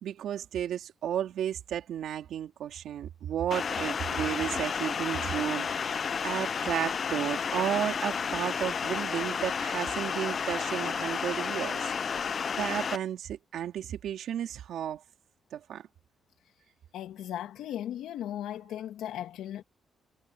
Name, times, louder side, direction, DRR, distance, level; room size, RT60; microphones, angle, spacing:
voice 1, 0.0-5.7 6.2-12.3 12.6-15.0 15.5-15.9, right 10 dB, 75° right, 3.7 m, -33 dB
sound 1, 3.5-13.0, left 6 dB, 50° left, 0.8 m, -32 dB
voice 2, 16.9-19.6, left 11 dB, 85° left, 2.8 m, -37 dB
cardioid pair, 80°, 0 cm